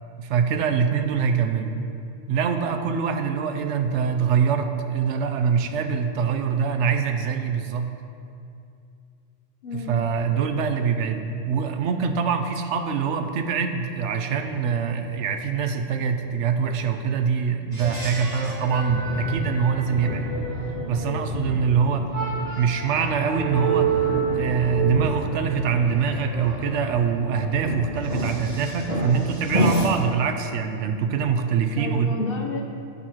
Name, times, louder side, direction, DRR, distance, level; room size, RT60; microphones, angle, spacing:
voice 1, 0.2-1.7 2.3-7.9 9.7-20.3 20.9-22.1 22.6-24.0 24.4-32.1, right 6 dB, 75° right, 6 dB, 0.9 m, -24 dB
voice 2, 9.6-10.0 20.9-21.8 31.7-32.6, left 4 dB, 55° left, 2 dB, 0.9 m, -32 dB
sound 1, 17.7-29.9, right 2 dB, 35° right, 1.6 m, -28 dB
8.4 x 4.3 x 6.2 m, 2.5 s
omnidirectional pair, 1.2 m